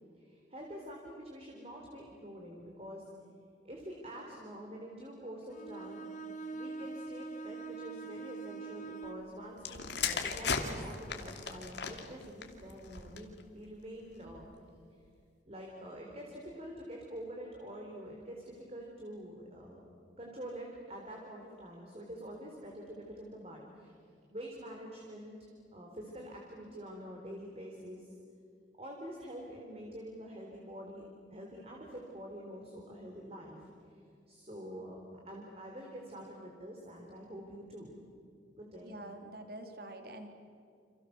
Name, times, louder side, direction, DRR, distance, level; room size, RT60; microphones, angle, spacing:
voice 1, 0.2-3.1 3.6-6.0 6.5-13.3 13.5-14.5 15.5-19.9 20.2-24.0 24.3-28.1 28.8-31.0 31.3-33.7 34.3-35.0 35.3-38.0 38.6-38.9, equal, 35° right, 0 dB, 3.9 m, -46 dB
Bowed string instrument, 5.5-9.3, right 4 dB, 40° left, 1.8 m, -43 dB
sound 1, 9.6-13.4 14.2-14.5, left 5 dB, 70° left, 2.7 m, -37 dB
voice 2, 38.8-40.3, right 1 dB, 55° right, 5 dB, 3.1 m, -46 dB
29.5 x 27.5 x 7.0 m, 2.4 s
head